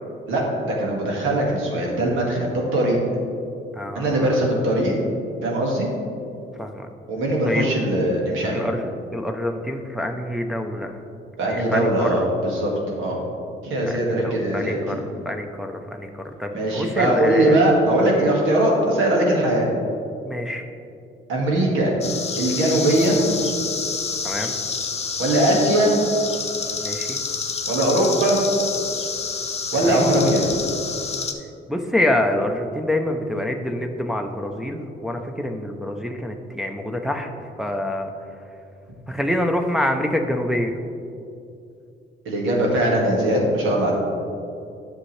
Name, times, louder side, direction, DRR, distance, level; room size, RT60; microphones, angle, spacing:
voice 1, 0.3-3.0 4.0-5.0 5.4-5.9 7.1-8.6 11.4-12.7 13.0-13.2 13.6-15.0 16.5-19.7 21.3-21.9 22.4-23.2 25.2-25.9 27.7-28.4 29.7-30.4 42.3-43.9, right 1 dB, 85° right, -2 dB, 1.8 m, -20 dB
voice 2, 3.8-4.4 6.6-6.9 7.4-7.7 8.5-11.0 11.4-12.3 13.9-16.1 16.4-17.6 20.2-20.6 24.2-24.6 26.8-27.2 29.8-30.0 31.7-37.3 37.6-38.1 39.1-40.8, left 1 dB, ahead, 2 dB, 0.6 m, -26 dB
sound 1, 22.0-31.3, left 5 dB, 30° left, 0.8 m, -28 dB
10.5 x 6.4 x 3.2 m, 2.6 s
cardioid pair, 90°, 20 cm